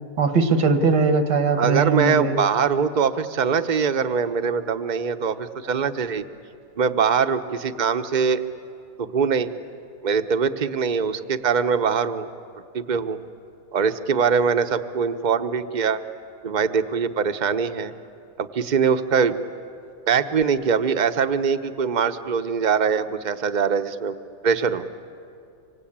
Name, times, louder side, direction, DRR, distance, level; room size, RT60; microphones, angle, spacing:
voice 1, 0.2-2.4, right 4 dB, 80° right, 8 dB, 2.1 m, -20 dB
voice 2, 1.6-6.2 6.8-8.4 9.0-9.5 10.0-12.3 12.7-13.2 13.7-16.0 16.4-17.9 18.4-19.4 20.1-24.1 24.4-24.9, right 6 dB, 40° right, 9 dB, 0.7 m, -22 dB
25.5 x 24.5 x 8.7 m, 2.5 s
omnidirectional pair, 1.8 m